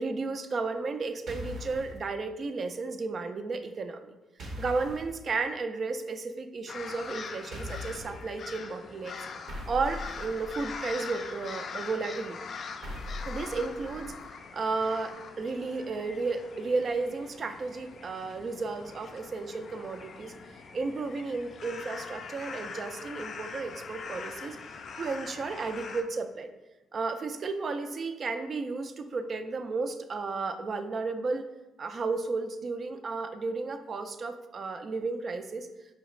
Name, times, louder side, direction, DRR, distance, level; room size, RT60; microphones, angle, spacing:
voice 1, 0.0-4.1 4.6-9.3 9.7-12.4 13.2-14.1 14.5-20.3 20.7-26.5 26.9-31.4 31.8-35.7, right 3 dB, 45° right, 9 dB, 0.3 m, -33 dB
sound 1, 1.3-2.0 4.4-5.1 7.5-8.2 9.5-10.9 12.8-14.2, left 2 dB, 65° right, 0.7 m, -40 dB
sound 2, 6.7-26.0, left 5 dB, 55° left, 0.3 m, -43 dB
5.0 x 2.4 x 3.1 m, 1.0 s
cardioid pair, 90°, 0 cm